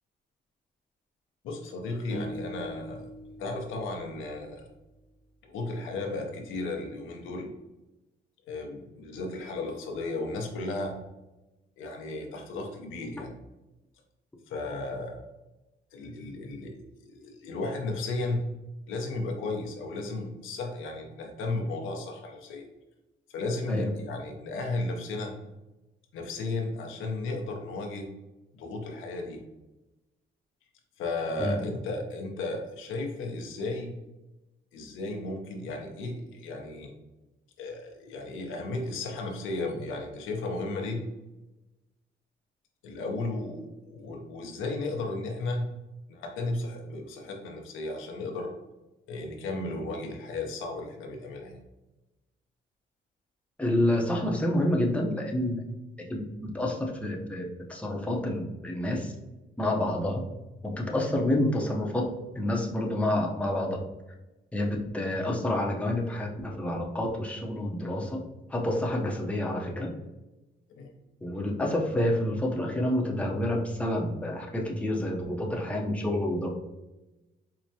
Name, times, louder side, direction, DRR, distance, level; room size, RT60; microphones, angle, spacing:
voice 1, 1.4-3.1 3.4-4.7 5.4-7.5 8.5-11.0 11.8-13.3 14.5-15.2 15.9-18.4 18.9-22.7 23.3-25.3 26.1-28.1 28.5-29.4 31.0-33.9 34.7-36.9 37.6-41.0 42.8-45.7 46.1-48.5 49.1-51.6 70.8-70.9, left 2 dB, 85° left, 2 dB, 0.6 m, -34 dB
sound 1, 2.1-5.3, equal, 45° left, 0.6 m, -42 dB
voice 2, 53.6-55.6 56.1-56.2 56.5-57.4 57.7-59.1 59.6-60.2 60.6-62.0 62.3-63.8 64.5-68.2 68.5-69.9 71.2-76.5, left 1 dB, 5° left, -1 dB, 0.7 m, -28 dB
4.6 x 2.1 x 2.7 m, 1.0 s
cardioid pair, 90°, 20 cm